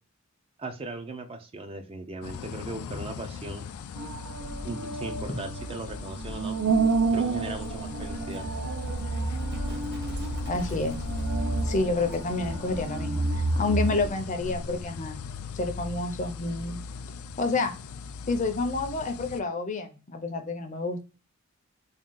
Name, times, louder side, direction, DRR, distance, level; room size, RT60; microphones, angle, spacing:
voice 1, 0.6-3.6 4.6-6.6 7.1-8.5, right 2 dB, 25° right, 6 dB, 0.4 m, -38 dB
sound 1, 2.2-19.4, left 6 dB, 85° left, 0.3 m, -39 dB
sound 2, 4.0-14.1, right 3 dB, 90° right, 0.6 m, -30 dB
Livestock farm animals working animals, 7.5-14.9, equal, 55° right, 1.2 m, -45 dB
voice 2, 10.5-11.0 11.6-15.2 15.5-16.8 17.4-17.7 18.3-21.0, left 3 dB, 35° left, 6 dB, 0.5 m, -29 dB
3.6 x 2.3 x 3.7 m, 0.32 s
head